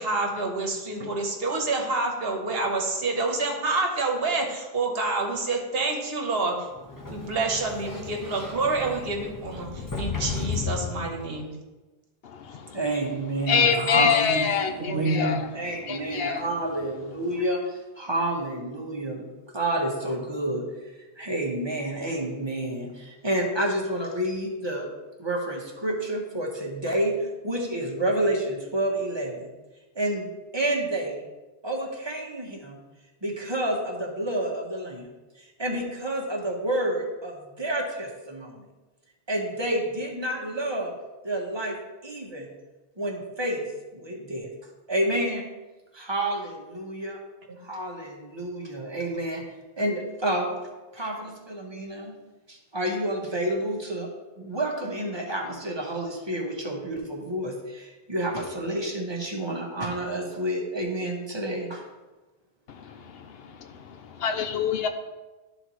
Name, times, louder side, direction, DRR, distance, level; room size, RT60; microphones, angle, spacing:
voice 1, 0.0-6.6 7.1-11.5 13.9-15.4 47.5-47.6, right 3 dB, 70° right, 2 dB, 1.2 m, -28 dB
Sliding door, 6.7-11.5, left 5 dB, 20° left, 0.8 m, -34 dB
voice 2, 12.7-19.3 19.5-20.7 21.2-24.9 25.2-29.5 29.9-31.2 31.6-32.8 33.2-35.1 35.4-38.6 39.3-40.9 41.2-41.8 42.0-42.5 43.0-44.5 44.9-45.4 45.9-47.2 47.6-49.4 49.8-50.6 50.9-52.1 52.5-54.1 54.4-61.8, right 1 dB, 25° right, -1 dB, 1.2 m, -29 dB
voice 3, 13.5-15.4 15.9-16.5 62.7-62.9 64.2-64.9, left 6 dB, 75° left, 7 dB, 0.8 m, -24 dB
12.0 x 4.0 x 3.1 m, 1.2 s
omnidirectional pair, 1.0 m